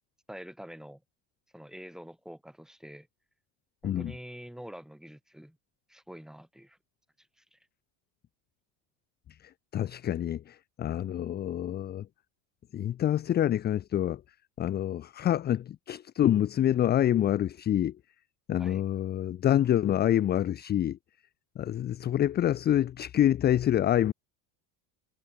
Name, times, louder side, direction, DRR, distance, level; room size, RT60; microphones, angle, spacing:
voice 1, 0.3-1.0 1.5-3.1 3.8-5.6 5.9-6.8 7.5-7.6 18.6-18.8, equal, ahead, 4.1 m, -46 dB
voice 2, 9.7-12.1 12.7-14.2 14.6-17.9 18.5-21.0 21.6-24.1, left 11 dB, 20° left, 0.5 m, -26 dB
cardioid pair, 170°, 47 cm